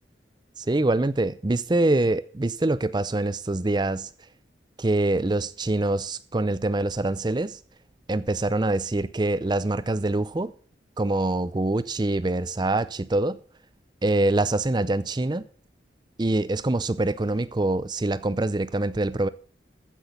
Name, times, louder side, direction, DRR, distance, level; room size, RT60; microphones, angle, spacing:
voice 1, 0.6-4.1 4.8-7.6 8.1-10.5 11.0-13.4 14.0-15.5 16.2-19.3, right 2 dB, 25° right, 0.5 m, -25 dB
14.5 x 6.1 x 6.8 m
head